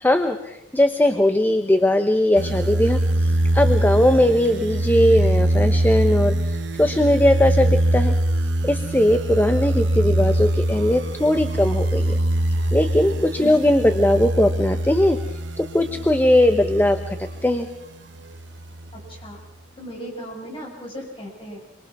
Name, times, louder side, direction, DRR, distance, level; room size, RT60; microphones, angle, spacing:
voice 1, 0.0-8.1 8.6-12.2 12.7-15.2 15.6-17.2 17.4-17.7, left 1 dB, 10° left, 7 dB, 0.9 m, -19 dB
sound 1, 2.4-17.6 18.2-19.2, right 1 dB, 80° right, 1.0 m, -23 dB
voice 2, 13.4-13.8 18.9-19.4 19.8-21.6, equal, 30° left, -1 dB, 6.8 m, -37 dB
27.5 x 22.5 x 6.1 m, 0.87 s
head